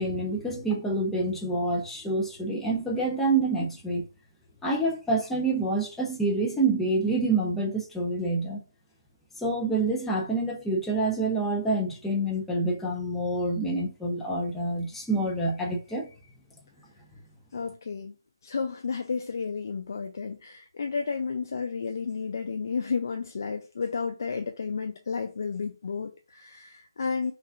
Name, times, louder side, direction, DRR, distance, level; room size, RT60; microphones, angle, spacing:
voice 1, 0.0-4.0 4.6-8.6 9.4-16.1, right 2 dB, 5° left, 0.6 m, -27 dB
voice 2, 17.5-18.1 18.4-27.3, left 5 dB, 50° left, 0.5 m, -32 dB
5.3 x 2.4 x 2.4 m
figure-of-eight pair, 145°, 2 cm